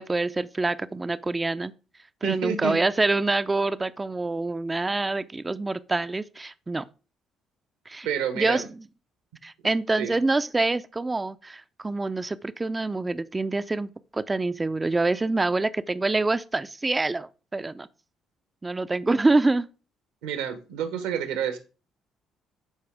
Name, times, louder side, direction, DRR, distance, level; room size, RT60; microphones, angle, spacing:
voice 1, 0.0-1.7 2.2-6.9 7.9-8.1 8.4-8.7 9.4-17.9 18.6-19.7, right 3 dB, 20° right, 0.5 m, -26 dB
voice 2, 2.2-2.8 8.0-8.7 10.0-10.2 20.2-21.6, right 8 dB, 75° right, 1.2 m, -29 dB
12.5 x 4.8 x 3.5 m
hypercardioid pair, 50°, 0 cm